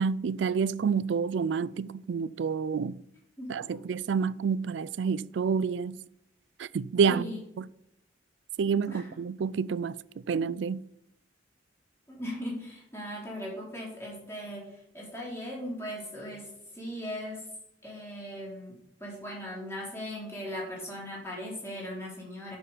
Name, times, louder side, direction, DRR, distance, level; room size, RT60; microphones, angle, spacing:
voice 1, 0.0-3.0 3.5-6.0 6.6-7.3 7.6-7.7 8.6-10.0 10.3-10.8, right 6 dB, 80° right, 0.4 m, -28 dB
voice 2, 7.1-7.4 8.9-9.1 12.1-17.4 17.8-18.7 19.0-22.6, equal, 15° left, 3.5 m, -38 dB
11.0 x 6.8 x 5.6 m
head